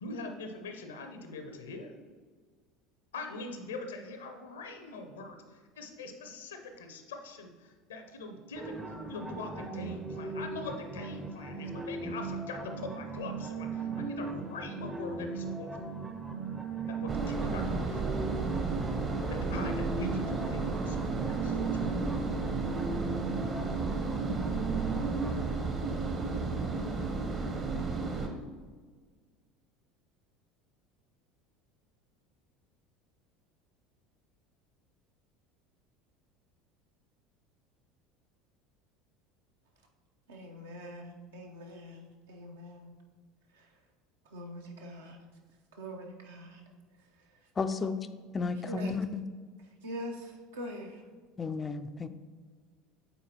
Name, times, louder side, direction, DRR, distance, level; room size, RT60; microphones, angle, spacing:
voice 1, 0.0-1.9 3.1-15.8 16.9-18.1 19.3-21.9, left 3 dB, 75° left, 5 dB, 0.7 m, -43 dB
sound 1, 8.6-25.3, right 4 dB, 10° right, 0.6 m, -38 dB
sound 2, 17.1-28.3, right 3 dB, 35° right, 0.9 m, -33 dB
voice 2, 40.3-42.9 43.5-43.7 44.3-45.2 45.8-46.6 48.6-48.9 49.8-51.0, equal, 70° right, 1 dB, 0.8 m, -43 dB
voice 3, 47.6-48.1 48.3-49.2 51.4-52.1, left 4 dB, 25° left, 11 dB, 0.4 m, -33 dB
8.0 x 4.1 x 2.9 m, 1.5 s
figure-of-eight pair, 70°, 0 cm